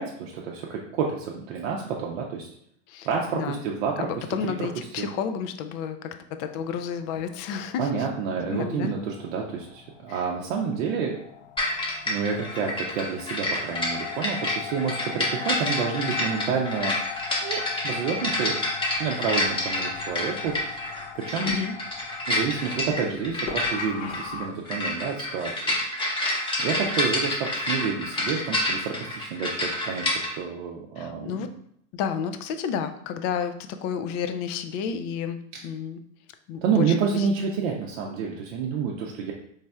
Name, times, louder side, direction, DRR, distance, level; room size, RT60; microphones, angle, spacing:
voice 1, 0.0-2.5 3.1-4.1 4.6-4.7 5.0-5.1 7.8-11.2 12.1-17.2 17.4-18.6 19.0-21.5 22.3-25.8 26.6-31.3 35.5-35.6 36.6-39.3, right 6 dB, 60° right, -1 dB, 0.6 m, -29 dB
voice 2, 4.0-8.1 8.5-8.9 10.1-10.2 21.4-21.7 31.0-31.5 31.9-33.6 33.8-36.0 36.5-36.9 37.1-37.3, left 7 dB, 40° left, 9 dB, 0.4 m, -31 dB
sound 1, 6.5-24.5, left 8 dB, 60° left, 0.8 m, -41 dB
sound 2, 11.6-30.3, left 1 dB, 15° left, 0.7 m, -28 dB
4.1 x 3.2 x 2.3 m, 0.68 s
hypercardioid pair, 95°, 39 cm